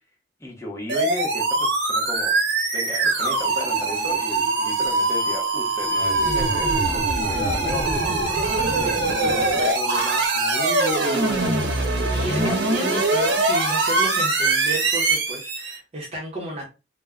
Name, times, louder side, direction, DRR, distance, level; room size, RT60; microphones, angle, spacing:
voice 1, 0.4-2.3 2.7-8.2 8.7-13.2, equal, 15° left, 0.8 m, -35 dB
sound 1, 0.9-15.8, right 2 dB, 90° right, 0.9 m, -22 dB
voice 2, 12.1-16.7, right 1 dB, 35° right, 0.7 m, -32 dB
2.2 x 2.1 x 3.6 m
head